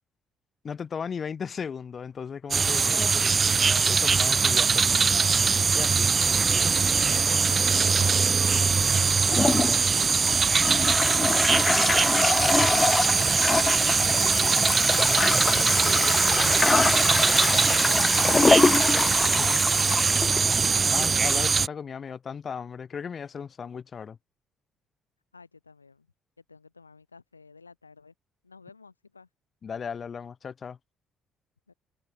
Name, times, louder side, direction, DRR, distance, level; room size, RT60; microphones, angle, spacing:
voice 1, 0.6-3.1 3.7-5.1 5.7-6.1 19.4-19.6 20.4-24.2 29.6-30.8, left 6 dB, 40° left, 7.2 m, -36 dB
sound 1, 2.5-21.7, right 5 dB, 35° right, 1.0 m, -22 dB
voice 2, 8.0-8.5 25.3-26.1 26.5-28.1 28.4-29.3 31.7-31.8, left 4 dB, 85° left, 4.1 m, -53 dB
Toilet flush, 9.3-21.1, left 3 dB, 25° left, 0.8 m, -25 dB
open air
figure-of-eight pair, 45°, 0 cm